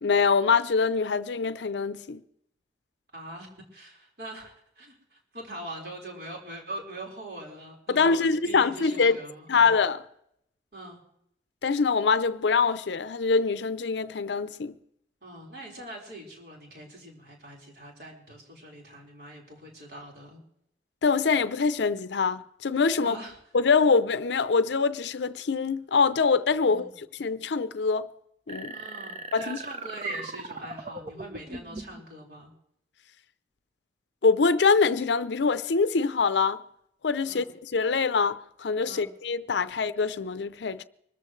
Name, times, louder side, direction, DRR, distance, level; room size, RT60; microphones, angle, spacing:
voice 1, 0.0-2.2 7.9-9.2 9.5-10.0 11.6-14.7 21.0-23.2 23.5-28.1 28.5-28.8 29.3-29.6 34.2-36.6 37.0-40.8, left 5 dB, 85° left, 0.6 m, -24 dB
voice 2, 3.1-9.7 10.7-11.0 15.2-20.4 23.0-23.3 26.6-26.9 28.7-32.5 37.2-37.5 38.8-39.1, right 1 dB, 60° right, 4.6 m, -42 dB
sound 1, 28.5-32.0, right 3 dB, 35° right, 0.9 m, -40 dB
24.5 x 14.0 x 3.2 m
head